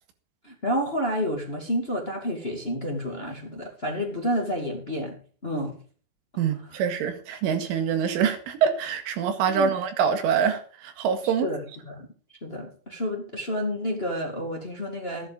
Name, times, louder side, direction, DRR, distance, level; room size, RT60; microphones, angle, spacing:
voice 1, 0.4-5.2 5.4-5.7 6.3-6.4 6.7-6.8 9.5-9.7 11.2-12.1 12.4-15.3, equal, 30° left, 1.0 m, -30 dB
voice 2, 6.4-11.5, right 7 dB, 80° right, 4.4 m, -25 dB
13.0 x 11.0 x 5.3 m
omnidirectional pair, 5.7 m